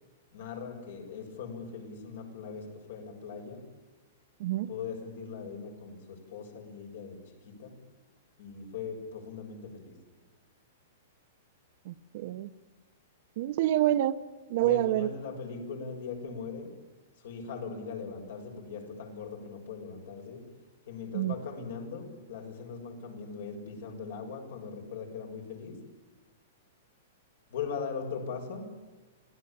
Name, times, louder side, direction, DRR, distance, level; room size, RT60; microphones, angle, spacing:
voice 1, 0.3-3.7 4.7-7.8 8.4-10.1 14.6-16.8 17.2-25.9 27.5-28.8, left 5 dB, 70° left, 7.2 m, -40 dB
voice 2, 11.8-12.5 13.4-14.2 14.5-15.1 21.1-21.3, right 14 dB, 55° right, 1.1 m, -27 dB
26.5 x 17.5 x 8.9 m
hypercardioid pair, 150°, 0 cm